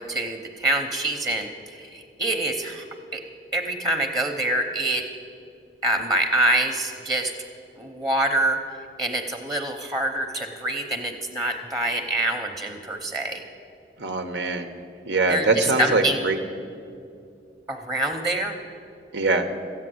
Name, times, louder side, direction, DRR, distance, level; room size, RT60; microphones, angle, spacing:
voice 1, 0.0-2.8 3.1-3.2 3.5-5.1 5.8-7.3 7.8-8.6 9.0-13.4 15.3-16.2 17.7-18.5, right 1 dB, 20° right, 3 dB, 0.8 m, -25 dB
voice 2, 14.0-14.7 15.1-16.4 19.1-19.5, right 3 dB, 90° right, 7 dB, 1.0 m, -23 dB
14.0 x 9.0 x 7.7 m, 2.5 s
head